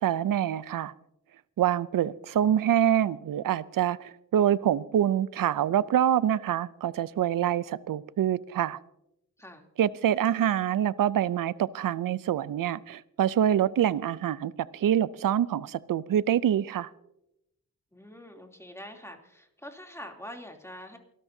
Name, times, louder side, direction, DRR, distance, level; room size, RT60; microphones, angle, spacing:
voice 1, 0.0-0.9 1.6-8.8 9.8-16.9, right 10 dB, 75° right, 0.5 m, -26 dB
voice 2, 17.9-21.0, left 1 dB, 10° left, 3.0 m, -45 dB
28.5 x 13.0 x 2.7 m
cardioid pair, 45°, 33 cm